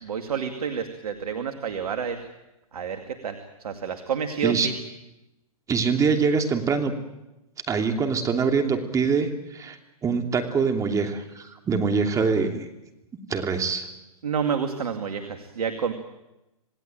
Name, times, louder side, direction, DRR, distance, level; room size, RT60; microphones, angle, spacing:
voice 1, 0.0-2.2 2.7-4.8 14.2-15.9, right 6 dB, 75° right, 7 dB, 2.4 m, -29 dB
voice 2, 5.7-6.9 7.7-12.7 13.3-13.9, right 5 dB, 15° right, 5 dB, 2.9 m, -24 dB
27.5 x 18.0 x 9.1 m, 0.96 s
hypercardioid pair, 125°, 19 cm